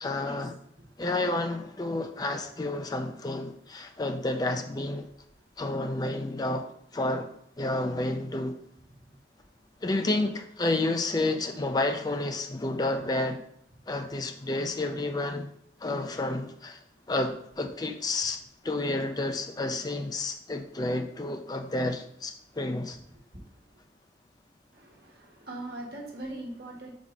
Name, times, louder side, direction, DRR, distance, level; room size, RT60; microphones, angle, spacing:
voice 1, 0.0-0.5 1.0-5.1 5.6-6.7 6.9-8.6 9.8-13.4 13.9-15.5 15.8-16.8 17.1-18.4 18.6-23.0, left 2 dB, 20° left, 0.4 m, -30 dB
voice 2, 23.1-23.4 24.7-26.9, right 1 dB, 55° right, 1.3 m, -41 dB
4.7 x 4.1 x 4.9 m
head